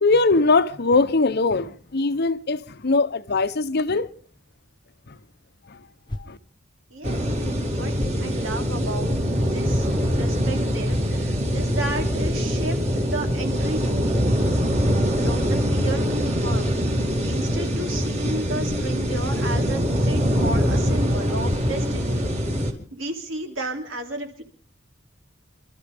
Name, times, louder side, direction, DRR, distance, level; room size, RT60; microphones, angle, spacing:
voice 1, 0.0-4.1 6.2-6.4, left 3 dB, 55° left, 0.8 m, -21 dB
sound 1, 6.1-6.3 7.2-7.3 8.0-8.2 8.5-8.7 9.0-9.3 9.8-9.9 10.8-11.1 11.8-12.0 13.1-13.5 14.5-14.6 15.3-15.6 16.7-16.8 17.5-17.7 18.2-18.3 18.6-19.3 19.6-20.1 20.4-21.0 21.4-22.0 22.5-22.6 23.1-23.2, left 1 dB, 25° left, 0.9 m, -36 dB
voice 2, 6.9-7.2 7.6-7.9 8.2-9.2 9.5-9.9 10.1-14.2 15.2-16.8 17.2-22.2 22.9-24.4, right 2 dB, 85° right, 3.1 m, -33 dB
sound 2, 7.0-22.7, equal, 35° right, 2.6 m, -23 dB
28.0 x 13.0 x 3.5 m
head